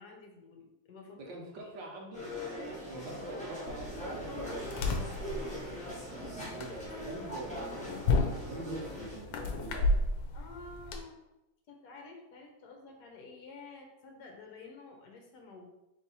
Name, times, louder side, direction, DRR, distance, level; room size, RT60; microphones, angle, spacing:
voice 1, 0.0-1.3 1.6-1.7 10.3-11.2 11.7-15.7, left 3 dB, 60° left, 1 dB, 1.3 m, -50 dB
voice 2, 1.2-2.2 2.8-4.9 6.1-10.0, right 2 dB, 70° right, -1 dB, 1.5 m, -45 dB
sound 1, 2.1-9.2, equal, 5° left, 0.8 m, -41 dB
sound 2, 3.7-11.0, left 2 dB, 75° left, 1.3 m, -34 dB
3.7 x 3.3 x 4.1 m, 0.94 s
omnidirectional pair, 2.2 m